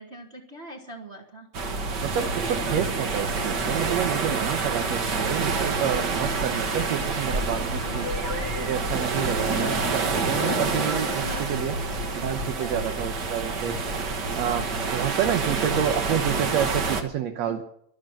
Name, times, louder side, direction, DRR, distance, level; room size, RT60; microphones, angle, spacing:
voice 1, 0.0-1.5 7.7-8.2 11.1-11.4 12.6-12.9 17.4-17.5, right 1 dB, 25° right, -1 dB, 1.7 m, -42 dB
sound 1, 1.5-17.0, right 3 dB, 45° right, 1.6 m, -27 dB
voice 2, 2.0-8.2 8.6-11.8 12.2-13.8 14.3-17.6, right 9 dB, 70° right, 5 dB, 2.2 m, -29 dB
sound 2, 7.8-12.8, left 6 dB, 45° left, 1.5 m, -38 dB
12.5 x 12.0 x 9.1 m, 0.71 s
omnidirectional pair, 3.4 m